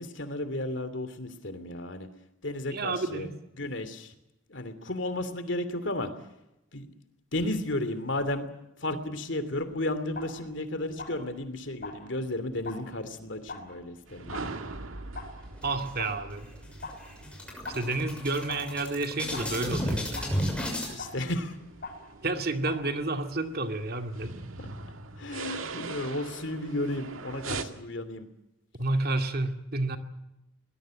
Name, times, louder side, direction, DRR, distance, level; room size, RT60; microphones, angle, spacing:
voice 1, 0.0-2.1 2.4-3.3 3.6-4.1 4.5-6.1 6.7-6.9 7.3-8.5 8.8-14.5 20.9-21.5 25.2-28.3, left 1 dB, 65° left, 11 dB, 2.8 m, -33 dB
voice 2, 2.7-3.3 15.6-16.5 17.7-20.0 22.2-24.3 28.8-30.0, right 2 dB, 50° right, 6 dB, 2.3 m, -30 dB
sound 1, 9.5-23.4, left 3 dB, 45° left, 5.9 m, -46 dB
sound 2, 14.1-27.6, right 3 dB, 85° right, 2.0 m, -43 dB
sound 3, 15.6-16.3 16.7-16.8 17.1-20.9, equal, 5° left, 6.4 m, -33 dB
23.0 x 20.0 x 7.7 m, 0.90 s
head